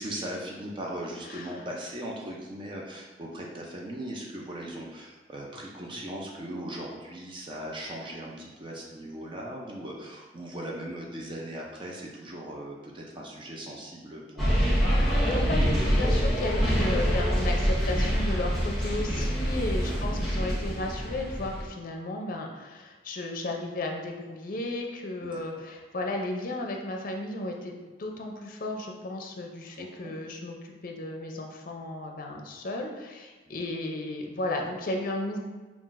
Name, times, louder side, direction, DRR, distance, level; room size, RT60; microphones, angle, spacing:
voice 1, 0.0-14.6 19.8-20.1 25.2-25.4 29.8-30.1 33.5-33.6, right 1 dB, 30° right, -2 dB, 0.5 m, -39 dB
sound 1, 14.4-21.7, equal, ahead, 1.2 m, -25 dB
voice 2, 14.9-35.4, left 2 dB, 55° left, 2 dB, 0.5 m, -34 dB
5.6 x 2.4 x 2.5 m, 1.3 s
head